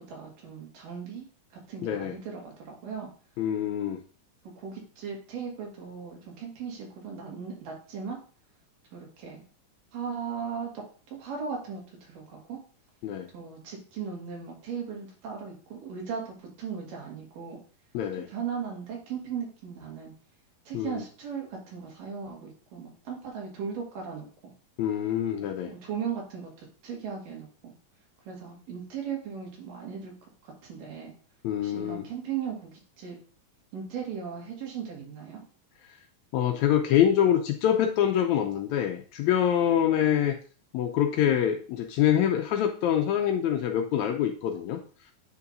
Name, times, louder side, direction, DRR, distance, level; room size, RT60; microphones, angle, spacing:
voice 1, 0.1-1.3 1.7-3.1 4.6-8.2 8.9-9.4 9.9-12.6 13.3-17.6 18.3-20.1 20.7-24.5 25.7-27.7 28.3-31.1 31.6-33.2 33.7-35.5, right 6 dB, 90° right, -1 dB, 3.6 m, -37 dB
voice 2, 1.8-2.1 3.4-4.0 13.0-13.3 17.9-18.3 20.7-21.0 24.8-25.7 31.4-32.0 36.3-40.4 40.7-44.8, left 10 dB, 80° left, 5 dB, 1.7 m, -25 dB
8.7 x 5.6 x 2.6 m, 0.39 s
omnidirectional pair, 3.7 m